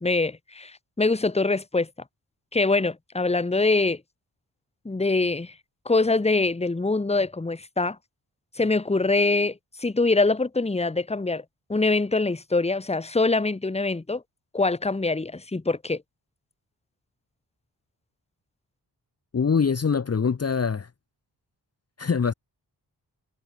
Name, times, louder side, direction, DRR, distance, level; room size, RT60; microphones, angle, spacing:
voice 1, 0.0-1.9 2.5-4.0 4.8-5.5 5.8-8.0 8.6-11.4 11.7-14.2 14.5-16.0, left 3 dB, 15° left, 1.3 m, -24 dB
voice 2, 19.3-20.9 22.0-22.3, left 6 dB, 35° left, 1.0 m, -23 dB
wide cardioid pair, 120°, 41 cm